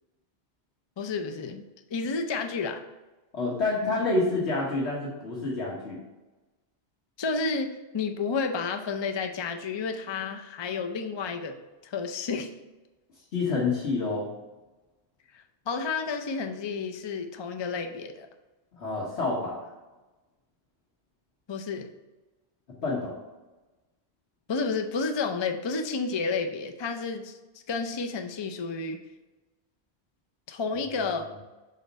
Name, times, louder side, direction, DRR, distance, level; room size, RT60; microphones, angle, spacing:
voice 1, 1.0-1.6 1.9-2.8 7.2-11.5 11.8-12.5 15.3-18.3 21.5-21.9 24.5-27.4 27.7-29.0 30.5-31.3, left 4 dB, 45° left, 5 dB, 0.3 m, -31 dB
voice 2, 3.3-6.0 13.3-14.3 18.8-19.6 22.8-23.1, left 3 dB, 85° left, -7 dB, 1.6 m, -28 dB
5.7 x 4.1 x 5.2 m, 1.1 s
omnidirectional pair, 1.1 m